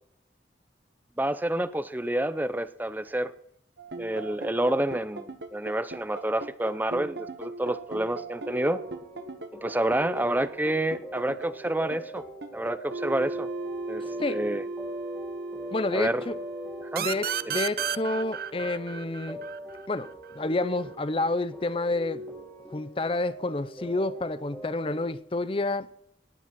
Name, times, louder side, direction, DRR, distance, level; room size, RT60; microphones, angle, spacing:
voice 1, 1.2-3.3 4.0-8.8 9.6-12.2 12.5-13.5 13.9-14.0 14.3-14.6 15.9-16.2 16.8-17.1 17.5-17.6, right 1 dB, 10° right, 0.6 m, -28 dB
sound 1, 3.8-17.7, right 2 dB, 75° right, 1.4 m, -38 dB
sound 2, 8.4-25.1, equal, 5° left, 2.5 m, -42 dB
voice 2, 15.7-16.4 17.0-19.4 19.9-22.2 22.7-25.9, left 2 dB, 30° left, 0.6 m, -29 dB
sound 3, 17.0-20.4, right 9 dB, 55° right, 0.6 m, -32 dB
18.5 x 7.3 x 6.0 m
head